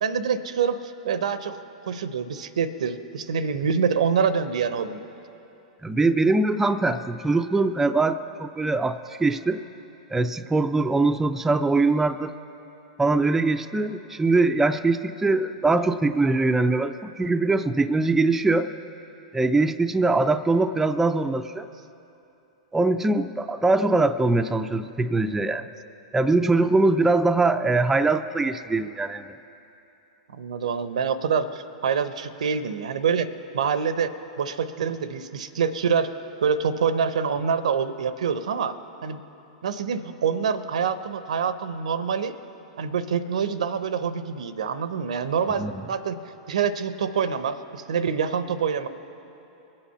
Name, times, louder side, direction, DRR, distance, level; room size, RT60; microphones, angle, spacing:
voice 1, 0.0-1.6 1.9-5.0 30.3-33.3 33.5-36.1 36.4-38.8 39.0-39.2 39.6-42.3 42.8-46.2 46.5-48.9, right 6 dB, 80° right, 13 dB, 0.7 m, -26 dB
voice 2, 5.8-9.6 10.1-12.3 13.0-18.7 19.3-21.7 22.7-25.7 26.1-29.3 45.6-45.7, right 3 dB, 10° right, 8 dB, 0.4 m, -22 dB
22.5 x 8.8 x 5.6 m, 2.9 s
hypercardioid pair, 110°, 4 cm